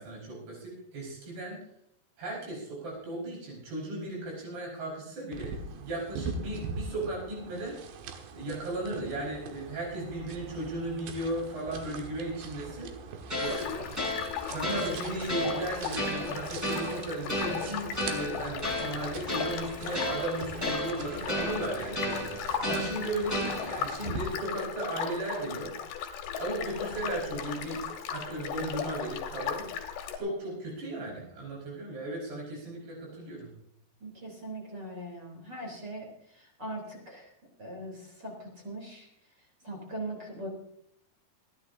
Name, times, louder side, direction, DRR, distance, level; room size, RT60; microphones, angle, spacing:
voice 1, 0.0-1.6 2.2-7.8 8.3-12.9 13.4-14.0 14.5-25.7 26.4-27.8 28.1-29.6 30.2-33.5, right 1 dB, 70° right, -3 dB, 7.2 m, -36 dB
sound 1, 5.3-24.2, right 4 dB, 85° right, 3.5 m, -43 dB
sound 2, 13.3-23.9, left 1 dB, 5° right, 4.8 m, -34 dB
sound 3, 13.4-30.2, left 8 dB, 85° left, 3.6 m, -37 dB
voice 2, 34.0-37.3 37.6-39.1 39.6-40.5, right 1 dB, 25° right, -1 dB, 3.8 m, -40 dB
28.0 x 10.5 x 2.8 m, 0.72 s
omnidirectional pair, 4.8 m